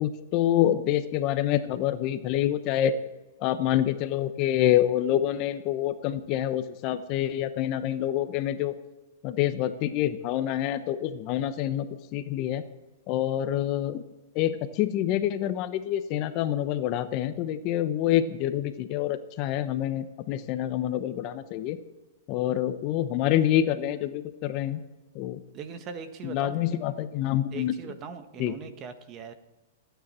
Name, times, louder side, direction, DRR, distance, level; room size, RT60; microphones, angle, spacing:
voice 1, 0.0-2.9 3.4-8.7 9.2-11.9 12.1-12.6 13.1-14.0 14.3-21.8 22.3-24.8 25.1-25.4 26.2-27.7 28.4-28.5, left 12 dB, 40° left, 11 dB, 0.9 m, -27 dB
voice 2, 25.5-26.6 27.5-29.3, right 6 dB, 30° right, 9 dB, 1.4 m, -40 dB
27.5 x 9.3 x 4.4 m, 1.1 s
hypercardioid pair, 140°, 0 cm